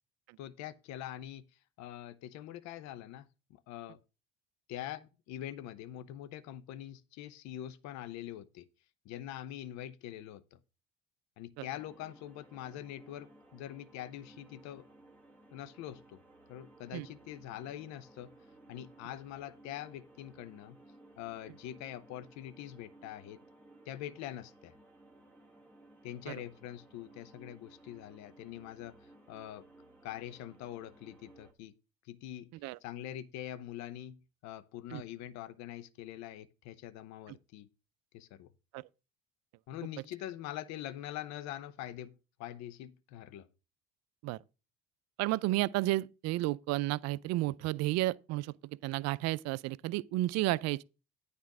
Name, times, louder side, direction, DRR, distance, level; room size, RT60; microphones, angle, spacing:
voice 1, 0.4-1.4 1.8-4.0 4.7-8.7 9.0-10.6 11.4-14.9 15.5-16.2 16.5-18.3 18.7-20.8 21.2-23.4 23.9-24.8 26.0-29.7 30.0-31.7 32.0-32.5 32.8-37.7 38.1-38.5 39.7-43.5, left 12 dB, 70° left, 0.8 m, -44 dB
sound 1, 11.7-31.5, right 2 dB, 5° left, 1.8 m, -59 dB
voice 2, 45.2-50.8, right 18 dB, 60° right, 0.5 m, -32 dB
9.4 x 4.4 x 6.0 m
hypercardioid pair, 75°, 29 cm